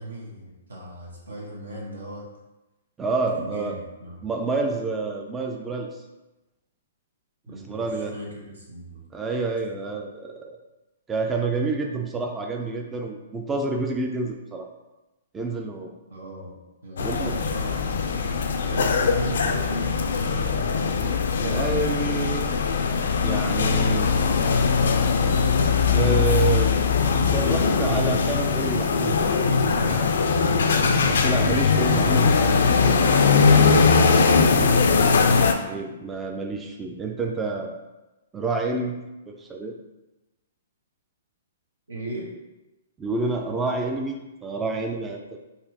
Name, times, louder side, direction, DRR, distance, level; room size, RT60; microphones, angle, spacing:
voice 1, 0.0-2.3 3.3-4.2 7.5-9.0 16.1-17.9 18.7-21.2 41.9-42.3, right 1 dB, 85° right, -3 dB, 1.1 m, -37 dB
voice 2, 3.0-3.8 4.2-6.0 7.7-8.2 9.1-10.6 11.1-14.7 15.3-15.9 17.0-17.3 21.4-22.5 23.2-24.1 25.9-26.8 27.3-29.4 29.7-30.3 31.1-32.4 32.8-34.8 35.6-37.8 38.3-39.8 43.0-45.2, right 3 dB, 15° right, 2 dB, 0.3 m, -29 dB
sound 1, 17.0-35.5, left 5 dB, 70° left, 0.4 m, -20 dB
4.1 x 2.5 x 2.8 m, 1.0 s
hypercardioid pair, 125°, 0 cm